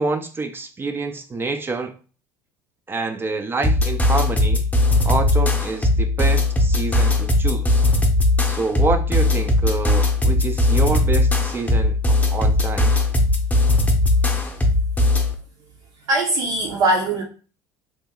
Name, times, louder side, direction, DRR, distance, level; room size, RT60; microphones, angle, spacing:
voice 1, 0.0-1.9 2.9-4.6 5.0-7.8 8.5-13.0, right 3 dB, 20° right, 0.4 m, -27 dB
sound 1, 3.6-15.3, left 2 dB, 15° left, 0.7 m, -19 dB
voice 2, 16.1-17.2, right 2 dB, 60° right, 0.7 m, -20 dB
3.0 x 2.0 x 3.6 m
hypercardioid pair, 75°, 10 cm